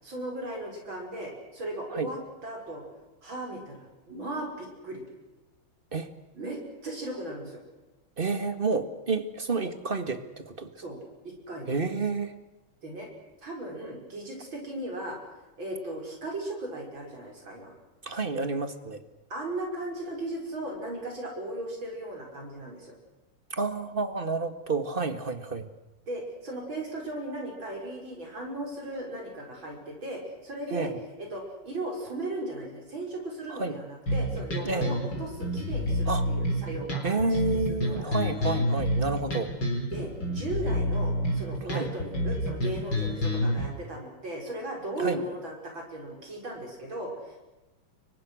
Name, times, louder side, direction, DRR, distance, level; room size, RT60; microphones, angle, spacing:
voice 1, 0.0-2.8 3.2-5.0 6.3-7.6 10.8-11.8 12.8-13.1 13.4-15.2 15.6-17.7 19.3-22.9 26.1-30.9 31.2-38.2 39.9-47.4, right 1 dB, 65° right, 0 dB, 6.5 m, -37 dB
voice 2, 8.2-10.7 11.7-12.3 18.0-19.0 23.5-25.7 30.7-31.0 33.5-33.8 34.6-34.9 36.1-36.3 37.0-39.5 41.7-41.9 45.0-45.2, right 3 dB, 25° right, 9 dB, 1.8 m, -30 dB
sound 1, 34.1-43.7, equal, 55° left, 4.9 m, -28 dB
29.5 x 24.0 x 6.4 m, 1.1 s
omnidirectional pair, 2.3 m